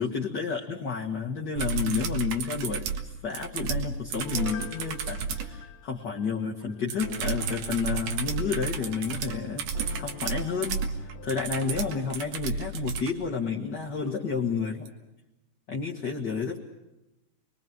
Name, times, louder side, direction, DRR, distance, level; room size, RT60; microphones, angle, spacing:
voice 1, 0.0-2.9 3.2-14.9 15.7-16.6, left 5 dB, 40° left, 0 dB, 1.8 m, -31 dB
sound 1, 1.6-5.5 6.9-13.1 14.9-15.0, right 5 dB, 80° right, 3.2 m, -32 dB
Piano, 4.1-6.8 7.2-7.3, left 9 dB, 60° left, 1.5 m, -44 dB
sound 2, 7.0-12.2, left 10 dB, 75° left, 2.5 m, -46 dB
29.5 x 22.0 x 6.1 m, 0.97 s
omnidirectional pair, 3.8 m